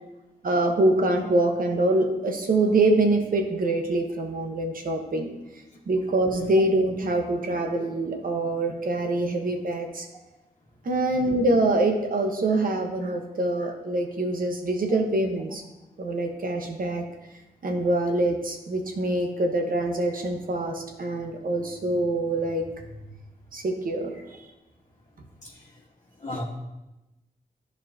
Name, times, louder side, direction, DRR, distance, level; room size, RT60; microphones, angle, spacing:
voice 1, 0.4-5.3 5.9-10.1 10.8-15.6 16.0-17.0 17.6-22.8 23.5-24.1, right 2 dB, 65° right, 3 dB, 1.1 m, -25 dB
voice 2, 11.1-11.3 14.9-15.0 24.1-24.2 25.4-25.6 26.2-26.4, left 1 dB, 50° left, -6 dB, 1.3 m, -36 dB
11.0 x 4.8 x 2.8 m, 0.99 s
cardioid pair, 65°, 16 cm